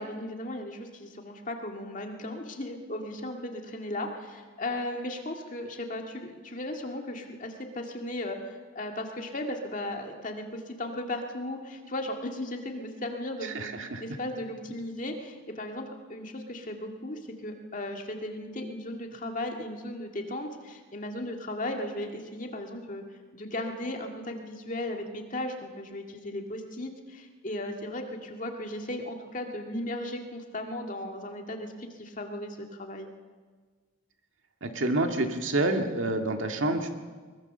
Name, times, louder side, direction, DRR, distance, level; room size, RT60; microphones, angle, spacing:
voice 1, 0.0-23.0 23.3-33.1, left 1 dB, 40° left, 3 dB, 2.1 m, -36 dB
voice 2, 13.5-14.0 34.6-36.9, right 2 dB, 70° right, 4 dB, 2.0 m, -28 dB
22.5 x 20.5 x 6.8 m, 1.4 s
head